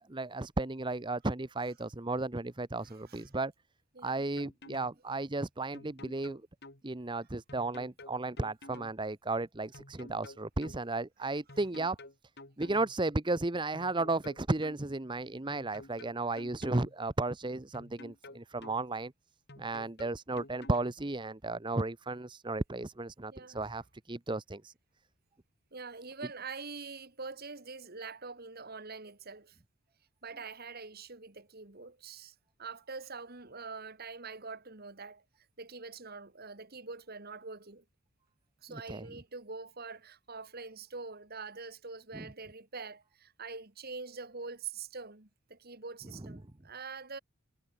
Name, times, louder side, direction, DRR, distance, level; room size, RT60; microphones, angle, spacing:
voice 1, 0.1-3.5 4.0-6.4 6.8-12.0 12.6-19.1 19.6-24.7 38.7-39.1 42.1-42.3, right 2 dB, 20° right, 0.8 m, -34 dB
voice 2, 2.9-3.2 4.0-4.2 23.3-23.7 25.7-29.6 30.2-35.2 35.6-37.8 38.6-47.2, right 4 dB, 45° right, 2.0 m, -44 dB
sound 1, 4.4-4.9 5.7-6.8 7.5-8.9 9.7-10.8 11.5-12.9 13.7-14.8 15.5-16.9 17.7-18.8 19.5-20.9, left 2 dB, 50° left, 6.2 m, -50 dB
head